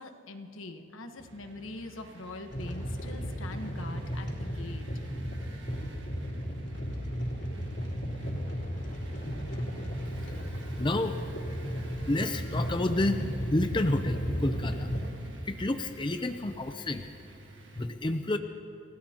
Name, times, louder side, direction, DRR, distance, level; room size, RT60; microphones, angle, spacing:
voice 1, 0.0-4.9, left 2 dB, 90° left, 6 dB, 1.3 m, -43 dB
sound 1, 1.2-17.9, right 2 dB, 65° right, 1.8 m, -52 dB
sound 2, 2.5-15.1, equal, 60° left, 3.4 m, -34 dB
voice 2, 10.8-11.2 12.1-14.9 15.4-17.1 17.8-18.4, left 2 dB, 25° left, 7 dB, 0.5 m, -30 dB
29.0 x 17.0 x 2.9 m, 2.8 s
head